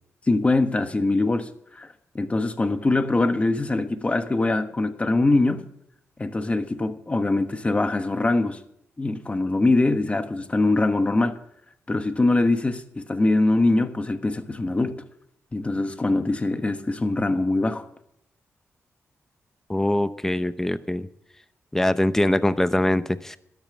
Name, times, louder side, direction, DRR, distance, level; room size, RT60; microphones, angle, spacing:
voice 1, 0.3-1.9 2.1-5.6 6.2-8.6 9.0-11.4 11.9-15.0 15.5-17.8, left 2 dB, 25° left, 1.3 m, -23 dB
voice 2, 19.7-21.1 21.7-23.4, left 1 dB, 10° left, 0.8 m, -23 dB
13.0 x 11.0 x 6.3 m
cardioid pair, 90°, 5 cm